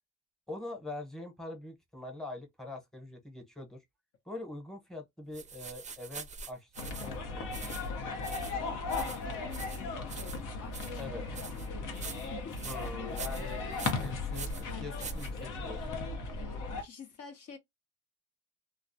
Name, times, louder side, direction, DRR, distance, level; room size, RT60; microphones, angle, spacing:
voice 1, 0.5-3.8 4.3-6.7 7.0-7.8 11.0-11.2 12.6-13.6 14.0-16.0, left 2 dB, ahead, 0.9 m, -43 dB
sound 1, 5.3-15.8, right 5 dB, 25° right, 0.4 m, -45 dB
sound 2, 6.8-16.8, left 3 dB, 90° left, 0.7 m, -37 dB
voice 2, 8.9-12.6 12.9-13.7 14.7-14.9 16.4-17.6, left 8 dB, 55° left, 0.6 m, -48 dB
2.3 x 2.1 x 2.6 m
cardioid pair, 90°, 30 cm